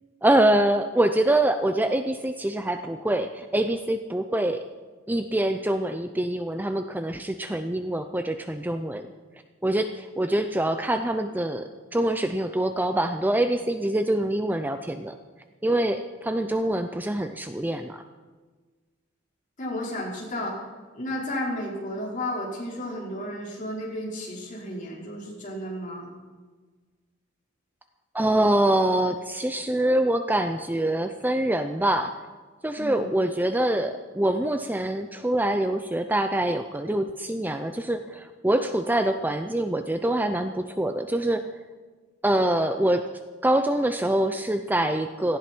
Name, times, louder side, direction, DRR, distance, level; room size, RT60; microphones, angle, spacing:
voice 1, 0.2-4.7 5.1-9.1 9.6-15.1 15.6-18.0 28.1-32.1 32.6-41.4 42.2-43.1 43.4-45.4, right 1 dB, 10° right, 8 dB, 0.6 m, -25 dB
voice 2, 19.6-20.5 20.9-26.1 32.8-33.2, left 1 dB, 40° left, -4 dB, 4.9 m, -33 dB
17.5 x 15.5 x 4.6 m, 1.4 s
head